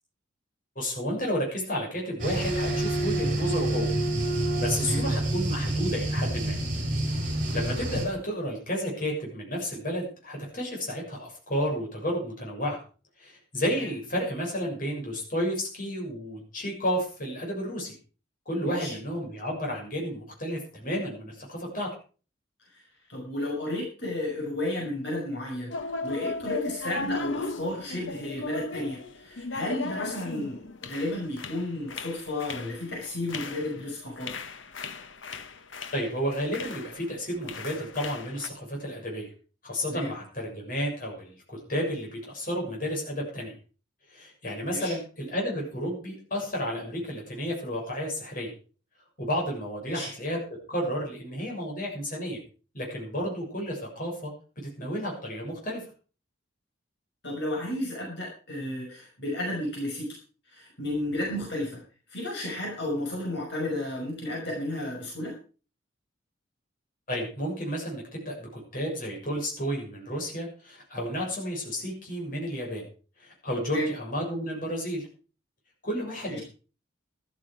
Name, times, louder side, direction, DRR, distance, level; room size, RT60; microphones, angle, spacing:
voice 1, 0.7-3.9 4.5-6.6 7.1-12.8 13.2-17.9 18.4-21.9 35.9-39.3 39.6-43.5 44.1-48.5 49.2-50.4 50.7-52.4 52.7-55.8 67.1-72.9 73.2-75.0 75.8-76.4, equal, 45° left, -1 dB, 6.9 m, -32 dB
sound 1, 2.2-8.1, right 1 dB, 40° right, 7.7 m, -27 dB
voice 2, 18.6-18.9 22.7-34.4 39.9-40.1 44.7-44.9 49.9-50.1 57.2-60.2 60.5-61.8 62.1-65.3 73.7-73.9 76.3-76.4, left 1 dB, 60° left, -2 dB, 5.8 m, -33 dB
sound 2, 25.7-37.1 37.4-38.5, left 3 dB, 80° left, 1.3 m, -37 dB
14.0 x 13.0 x 5.0 m, 0.38 s
head